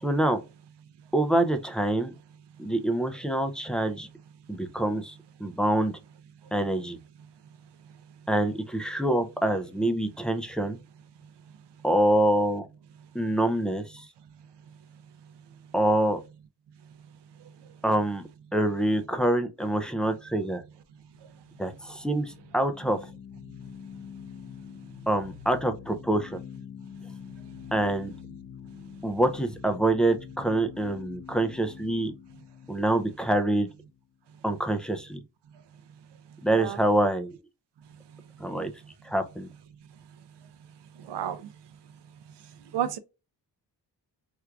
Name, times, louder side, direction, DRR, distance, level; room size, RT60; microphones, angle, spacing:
voice 1, 0.0-0.4 1.1-2.1 2.6-4.1 4.5-5.2 5.4-5.9 6.5-7.0 8.3-10.8 11.8-12.6 13.1-14.1 15.7-16.2 17.8-18.2 18.5-20.6 21.6-23.0 25.1-26.4 27.7-28.1 29.0-32.1 32.7-33.7 34.4-35.2 36.4-37.4 38.4-38.7 39.0-39.5, right 1 dB, ahead, 0.3 m, -26 dB
sound 1, 21.0-34.2, left 8 dB, 75° left, 0.8 m, -46 dB
voice 2, 41.0-41.5 42.7-43.0, right 10 dB, 75° right, 0.5 m, -31 dB
4.5 x 2.3 x 2.3 m
wide cardioid pair, 135°, 42 cm